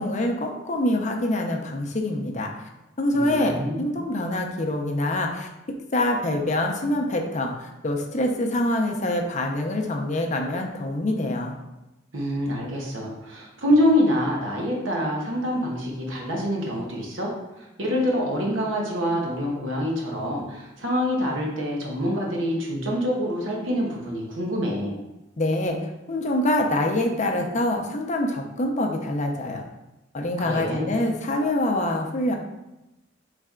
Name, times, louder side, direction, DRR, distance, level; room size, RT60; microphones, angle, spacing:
voice 1, 0.0-2.7 3.0-5.5 5.9-11.5 25.4-25.8 26.1-29.6 30.1-32.3, left 1 dB, 40° left, 2 dB, 0.5 m, -25 dB
voice 2, 3.1-3.9 12.1-17.3 17.6-25.0 30.4-30.9, equal, 80° right, -2 dB, 1.1 m, -26 dB
4.1 x 3.3 x 3.6 m, 0.96 s
head